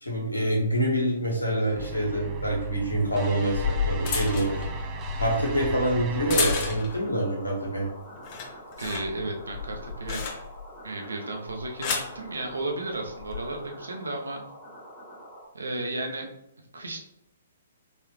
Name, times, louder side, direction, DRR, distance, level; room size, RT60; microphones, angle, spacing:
voice 1, 0.0-4.6 5.2-7.9, right 1 dB, 85° left, -2 dB, 1.4 m, -26 dB
sound 1, 1.8-6.8, right 3 dB, 25° right, 0.4 m, -35 dB
sound 2, 3.1-7.1 7.5-7.9 8.2-10.7 11.5-12.2 13.1-13.4, left 5 dB, 35° left, 0.8 m, -32 dB
sound 3, 3.6-15.5, equal, 15° left, 1.4 m, -46 dB
voice 2, 8.8-10.3 10.8-14.4 15.5-16.3 16.7-17.0, right 2 dB, 70° right, 2 dB, 0.7 m, -33 dB
4.0 x 2.7 x 3.1 m, 0.81 s
figure-of-eight pair, 120°, 0 cm